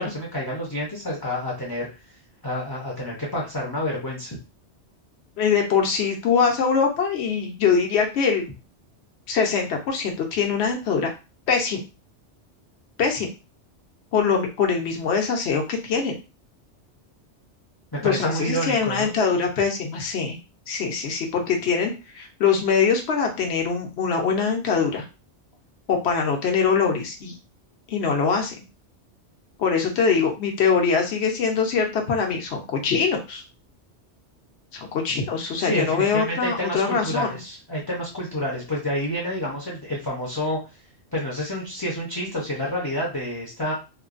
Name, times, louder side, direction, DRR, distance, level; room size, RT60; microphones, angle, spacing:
voice 1, 0.0-1.9 2.4-4.4 17.9-19.1 35.1-35.2 35.5-40.6 41.1-43.7, left 1 dB, 25° left, -4 dB, 0.6 m, -29 dB
voice 2, 5.4-8.4 9.3-11.1 11.5-11.8 13.0-13.3 14.1-16.2 18.0-20.4 20.7-25.0 25.9-27.3 27.9-28.5 29.6-33.4 34.7-37.3, left 6 dB, 65° left, 2 dB, 0.9 m, -23 dB
3.1 x 2.1 x 2.4 m, 0.30 s
omnidirectional pair, 1.2 m